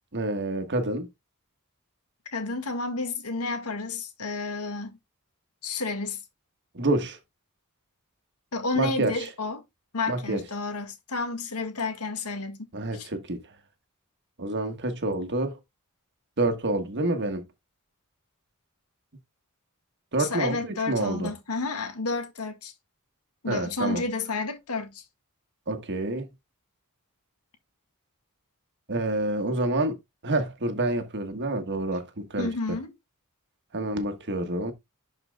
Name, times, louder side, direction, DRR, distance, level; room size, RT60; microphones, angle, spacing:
voice 1, 0.1-1.1 6.7-7.2 8.8-9.3 10.1-10.4 12.7-13.4 14.4-15.6 16.4-17.5 20.1-21.3 23.5-24.0 25.7-26.3 28.9-30.0 30.2-32.5 33.7-34.7, right 2 dB, 50° right, 1.4 m, -28 dB
voice 2, 2.3-5.0 5.6-6.2 8.5-9.6 9.9-12.7 12.9-13.1 20.2-22.7 23.4-25.0 32.4-32.9, left 3 dB, 85° left, 1.8 m, -31 dB
11.5 x 4.8 x 2.3 m
head